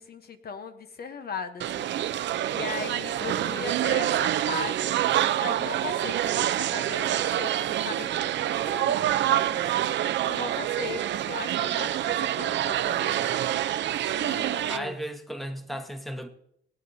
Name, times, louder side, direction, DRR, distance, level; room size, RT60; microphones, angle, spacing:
voice 1, 0.0-1.9 2.2-5.0 5.3-9.6 10.2-13.3 14.1-15.0, left 5 dB, 50° left, 1.0 m, -38 dB
sound 1, 1.6-14.8, right 12 dB, 65° right, 0.6 m, -27 dB
voice 2, 3.2-3.6 14.7-16.3, right 1 dB, ahead, 1.3 m, -36 dB
21.0 x 8.8 x 2.7 m
cardioid pair, 90°, 20 cm